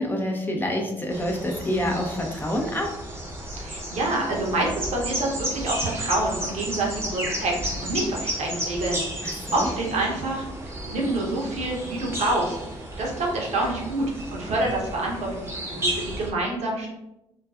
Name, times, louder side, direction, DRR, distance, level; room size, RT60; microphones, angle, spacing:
voice 1, 0.0-2.9 9.2-9.7, left 1 dB, 15° left, 1 dB, 0.5 m, -27 dB
sound 1, 1.1-16.3, right 1 dB, 20° right, 0.7 m, -33 dB
voice 2, 3.6-10.4 10.9-12.5 13.0-14.1 14.3-15.5 15.7-16.9, right 2 dB, 60° right, -2 dB, 0.7 m, -27 dB
2.4 x 2.3 x 2.3 m, 0.87 s
hypercardioid pair, 45°, 13 cm